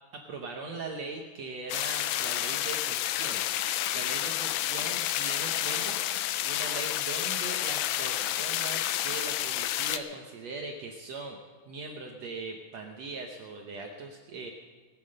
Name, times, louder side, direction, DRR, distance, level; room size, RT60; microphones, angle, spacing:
voice 1, 0.1-3.4 3.9-11.4 11.7-14.5, right 3 dB, 65° right, 2 dB, 1.7 m, -40 dB
sound 1, 1.7-10.0, left 13 dB, 90° left, 2.4 m, -30 dB
20.5 x 9.1 x 6.5 m, 1.5 s
omnidirectional pair, 4.1 m